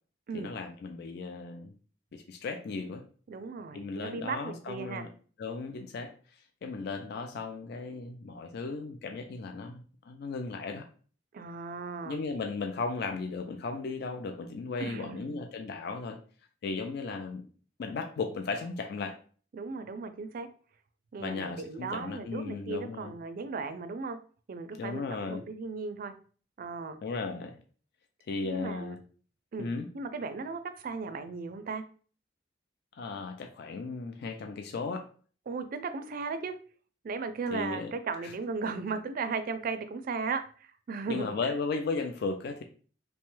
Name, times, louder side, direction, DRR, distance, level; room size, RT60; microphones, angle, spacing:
voice 1, 0.3-1.7 2.1-3.1 3.7-5.1 5.4-6.1 6.6-10.9 12.1-16.2 16.6-17.5 17.8-19.2 21.2-23.1 24.8-25.4 27.0-27.6 28.3-29.0 29.6-29.9 32.9-35.1 37.5-38.3 41.1-42.6, left 4 dB, 60° left, 5 dB, 0.4 m, -36 dB
voice 2, 3.3-5.1 11.3-12.2 14.8-15.4 19.5-20.5 21.1-24.2 24.5-26.1 26.6-27.0 28.4-29.0 29.5-29.7 29.9-31.8 35.5-36.5 37.0-41.3, right 4 dB, 50° right, 9 dB, 0.4 m, -36 dB
3.0 x 2.2 x 3.1 m, 0.41 s
head